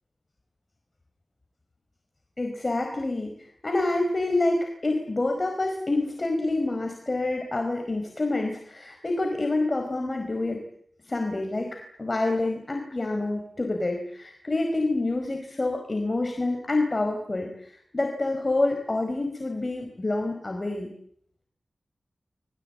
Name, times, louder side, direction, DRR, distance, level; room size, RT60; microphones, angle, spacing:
voice 1, 2.4-10.6 11.1-20.9, left 2 dB, 35° left, 3 dB, 4.6 m, -27 dB
28.5 x 22.0 x 8.7 m, 0.67 s
wide cardioid pair, 90°, 0 cm